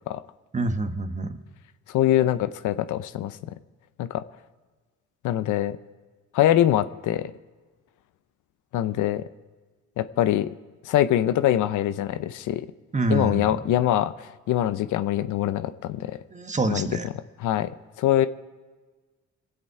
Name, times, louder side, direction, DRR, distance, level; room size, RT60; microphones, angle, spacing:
voice 1, 0.5-1.4 12.9-13.6 16.3-17.1, right 2 dB, 25° right, 8 dB, 1.1 m, -26 dB
voice 2, 1.9-3.4 4.0-4.2 5.2-5.8 6.3-7.3 8.7-9.2 10.0-10.5 10.8-12.7 13.1-16.2 16.7-16.9 17.4-17.7 18.0-18.3, left 12 dB, 80° left, 12 dB, 0.7 m, -23 dB
22.5 x 8.1 x 4.7 m, 1.3 s
cardioid pair, 90°, 30 cm